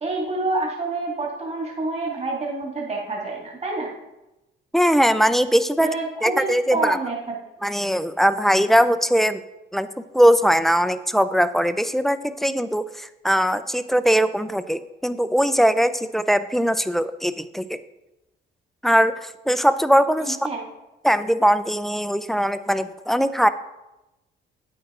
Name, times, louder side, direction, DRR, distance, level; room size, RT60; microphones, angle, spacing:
voice 1, 0.0-3.9 5.8-7.2 20.2-20.6, right 2 dB, 30° right, -2 dB, 2.3 m, -27 dB
voice 2, 4.7-5.9 6.2-7.0 7.6-9.4 9.7-9.9 10.1-17.8 18.8-20.4 21.0-23.5, equal, ahead, 11 dB, 0.5 m, -20 dB
9.2 x 8.8 x 3.7 m, 0.96 s
cardioid pair, 90°, 20 cm